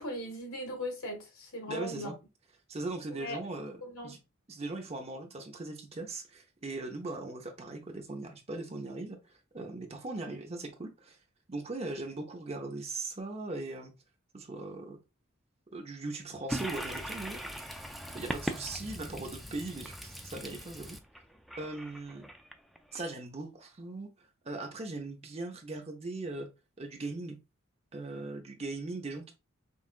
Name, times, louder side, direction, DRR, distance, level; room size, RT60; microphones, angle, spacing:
voice 1, 0.0-2.1 3.1-3.4 3.8-4.2, left 1 dB, 80° left, 1.8 m, -39 dB
voice 2, 1.7-2.1 2.7-3.8 4.0-4.2 4.5-9.2 9.5-11.2 11.5-13.9 14.3-15.0 15.7-17.7 18.1-21.0 21.6-22.2 22.9-24.1 24.4-26.5 26.8-27.4 27.9-29.3, right 2 dB, 30° right, 0.6 m, -39 dB
Toilet flush, 16.5-23.0, equal, ahead, 0.3 m, -40 dB
5.4 x 2.4 x 2.4 m
head